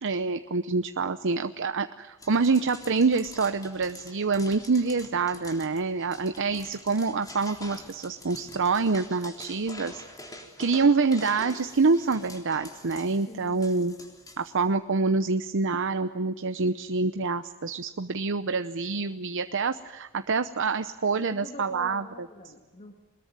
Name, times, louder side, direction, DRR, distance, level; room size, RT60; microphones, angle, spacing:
voice 1, 0.0-10.0 10.6-13.9 14.4-22.0, right 4 dB, 60° right, 9 dB, 0.8 m, -26 dB
sound 1, 2.2-14.7, left 1 dB, 15° left, 3.6 m, -46 dB
voice 2, 13.3-13.7 21.1-23.0, left 2 dB, 35° left, 2 dB, 2.1 m, -44 dB
23.0 x 21.0 x 9.5 m, 1.1 s
head